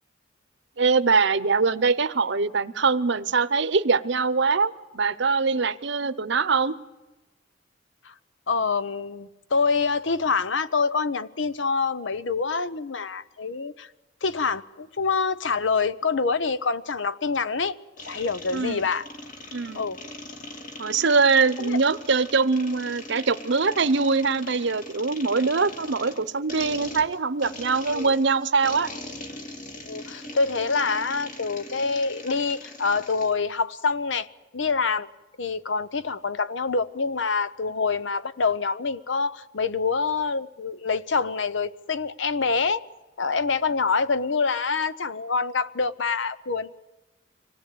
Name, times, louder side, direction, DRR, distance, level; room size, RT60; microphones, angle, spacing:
voice 1, 0.8-6.8 18.5-18.8 19.5-19.8 20.8-28.9, right 4 dB, 65° right, 0.9 m, -23 dB
voice 2, 8.5-13.9 14.2-17.8 18.1-19.1 19.7-20.0 21.6-21.8 25.4-25.5 27.9-28.1 29.9-34.3 34.5-35.1 35.4-42.8 43.2-46.8, left 4 dB, 70° left, 0.8 m, -26 dB
sound 1, 18.0-33.4, left 2 dB, 45° left, 2.3 m, -41 dB
25.0 x 17.5 x 8.6 m
head